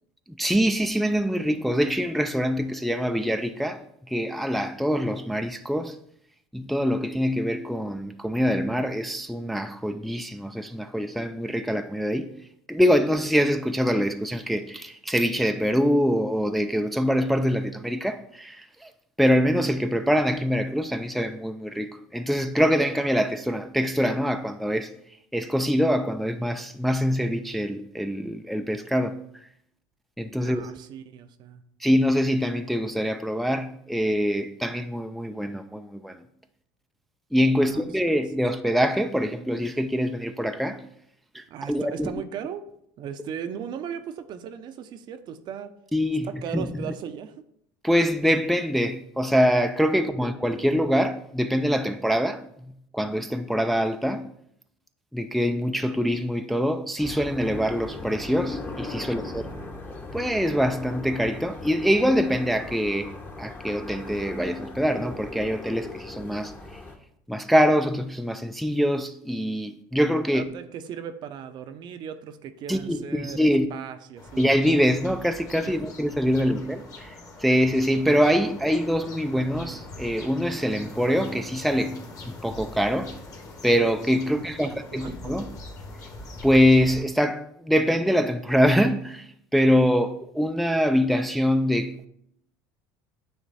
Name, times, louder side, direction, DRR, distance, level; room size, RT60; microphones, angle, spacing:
voice 1, 0.4-3.8 4.1-6.0 6.5-12.3 12.7-18.9 19.2-24.9 25.3-29.2 30.2-30.7 31.8-36.2 37.3-40.9 41.3-42.2 45.9-46.7 47.8-52.4 52.9-54.3 55.1-59.5 60.1-63.1 63.4-66.8 67.3-70.5 72.7-73.7 74.4-77.1 77.4-83.1 83.6-85.5 86.4-92.1, equal, ahead, 0.4 m, -24 dB
voice 2, 30.4-31.6 37.6-38.2 41.5-42.7 43.0-45.8 46.2-47.4 50.1-50.3 59.0-59.7 70.3-74.4 75.6-75.8 84.3-85.4, right 8 dB, 50° right, 0.6 m, -38 dB
sound 1, 57.0-66.9, left 3 dB, 20° left, 1.0 m, -39 dB
sound 2, 74.2-87.0, left 2 dB, 35° left, 1.5 m, -42 dB
9.2 x 3.2 x 4.1 m
supercardioid pair, 105°, 9 cm